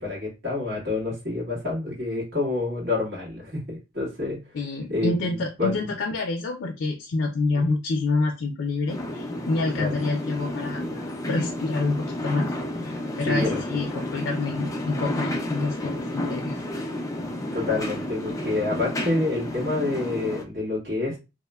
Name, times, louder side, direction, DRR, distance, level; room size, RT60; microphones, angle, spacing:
voice 1, 0.0-4.6 4.9-5.9 7.5-7.6 9.7-9.9 13.2-13.6 17.5-21.2, left 2 dB, 60° right, -5 dB, 1.6 m, -28 dB
voice 2, 4.5-10.8 11.3-12.5 12.8-16.5, left 3 dB, 85° left, 1 dB, 0.4 m, -27 dB
sound 1, 8.9-20.4, left 1 dB, 15° left, 0.4 m, -31 dB
2.9 x 2.1 x 2.2 m, 0.27 s
head